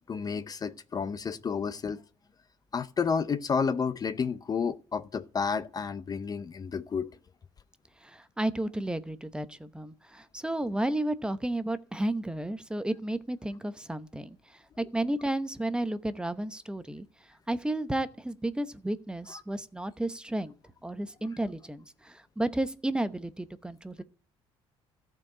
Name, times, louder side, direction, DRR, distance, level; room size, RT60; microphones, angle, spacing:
voice 1, 0.1-2.0 2.7-7.1, left 5 dB, 35° left, 0.6 m, -31 dB
voice 2, 8.0-17.0 17.5-20.5 20.8-24.0, right 1 dB, 10° right, 0.9 m, -32 dB
14.0 x 4.7 x 8.7 m
cardioid pair, 90°, 12 cm